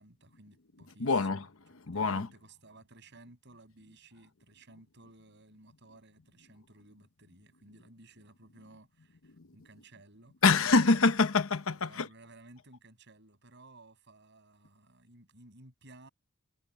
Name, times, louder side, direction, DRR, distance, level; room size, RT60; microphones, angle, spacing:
voice 1, 0.0-1.5 1.9-10.3 11.9-16.1, right 2 dB, 50° right, 6.6 m, -56 dB
voice 2, 1.0-1.5 1.9-2.3 10.4-12.1, left 4 dB, 60° left, 0.9 m, -25 dB
head